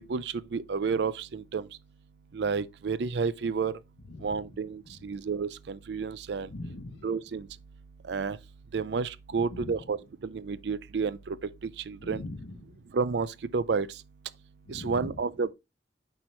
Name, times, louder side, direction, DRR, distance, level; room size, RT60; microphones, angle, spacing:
voice 1, 0.0-1.7 2.3-3.8 4.2-6.5 7.0-7.5 8.1-8.4 8.7-10.0 10.2-11.4 11.9-12.2 12.9-13.9 14.7-15.5, right 5 dB, 65° right, 0.4 m, -30 dB
voice 2, 6.5-7.1 9.5-9.7 12.0-12.7 14.7-15.1, left 2 dB, 75° left, 0.8 m, -41 dB
7.4 x 4.5 x 3.1 m
head